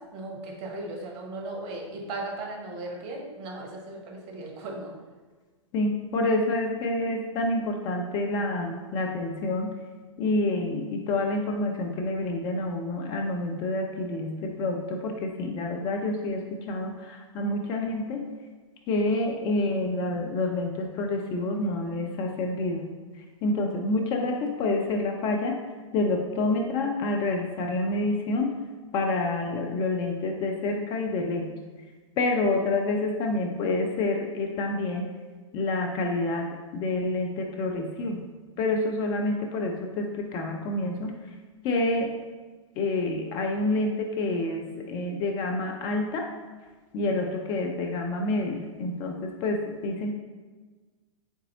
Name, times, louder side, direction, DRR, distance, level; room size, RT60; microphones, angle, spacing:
voice 1, 0.0-5.0, right 2 dB, 35° right, 0 dB, 0.8 m, -37 dB
voice 2, 5.7-9.7 10.2-18.2 18.9-22.9 23.1-25.6 25.9-28.5 28.9-31.5 32.2-35.0 35.5-38.3 38.6-41.2 41.6-42.2 42.8-46.3 46.9-50.1, left 2 dB, 30° left, 2 dB, 0.4 m, -28 dB
3.9 x 3.5 x 2.7 m, 1.4 s
figure-of-eight pair, 105°, 16 cm